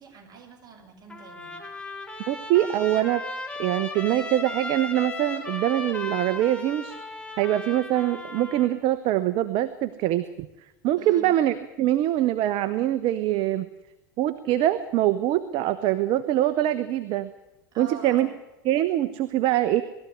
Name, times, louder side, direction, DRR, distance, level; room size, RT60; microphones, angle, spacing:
voice 1, 0.0-1.6 11.0-11.3 17.7-18.3, right 5 dB, 40° right, 3 dB, 5.8 m, -44 dB
Trumpet, 1.1-8.7, left 2 dB, 10° left, 4.2 m, -36 dB
voice 2, 2.3-3.2 3.6-6.9 7.4-10.5 10.8-13.7 14.2-17.3 17.8-18.3 18.6-19.8, right 13 dB, 55° right, 13 dB, 1.1 m, -24 dB
20.5 x 14.0 x 9.4 m, 0.95 s
hypercardioid pair, 90°, 11 cm